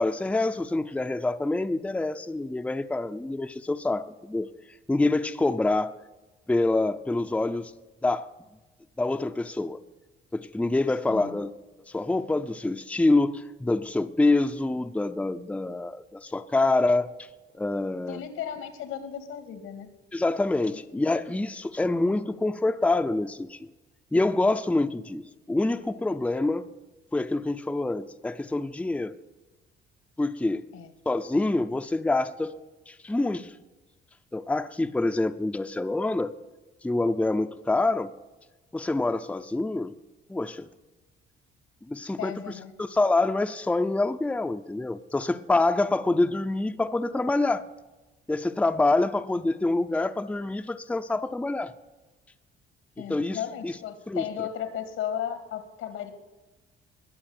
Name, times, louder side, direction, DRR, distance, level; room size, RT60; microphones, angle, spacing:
voice 1, 0.0-4.5 4.9-6.0 6.5-7.7 8.0-8.3 9.0-9.8 10.3-11.5 11.9-17.1 17.5-18.2 20.1-23.6 24.1-26.7 27.1-29.1 30.2-30.7 31.1-32.5 32.9-33.5 34.3-36.3 36.8-38.1 38.7-39.9 40.3-40.7 41.9-42.4 42.8-47.7 48.3-51.7 53.0-53.7 54.1-54.2, left 2 dB, 5° left, 8 dB, 0.6 m, -26 dB
voice 2, 11.1-11.4 18.1-19.9 20.7-21.5 30.7-30.9 42.2-42.7 53.0-56.1, left 9 dB, 90° left, 9 dB, 2.3 m, -35 dB
20.5 x 7.2 x 8.9 m, 1.1 s
cardioid pair, 125°, 21 cm